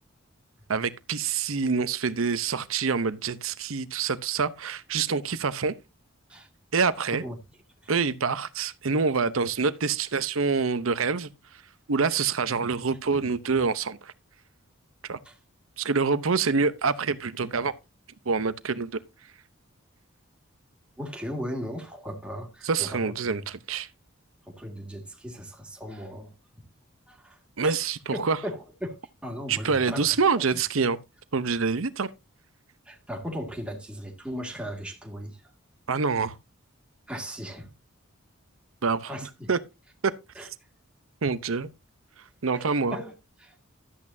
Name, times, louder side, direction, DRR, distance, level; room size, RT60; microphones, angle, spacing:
voice 1, 0.7-5.7 6.7-7.2 7.9-11.3 11.9-14.1 15.1-15.2 15.8-17.7 18.3-18.9 22.6-23.9 27.6-28.4 29.5-31.0 31.3-32.1 35.9-36.4 38.8-39.1 39.5-39.6 40.0-40.1 41.2-41.7 42.4-43.0, right 5 dB, 80° right, 0.8 m, -26 dB
voice 2, 21.0-23.4 24.5-26.3 27.1-27.8 28.1-30.6 32.9-35.4 37.1-37.7 39.1-39.5 40.4-40.5 42.5-43.6, equal, 5° right, 1.9 m, -37 dB
12.5 x 8.6 x 2.7 m
head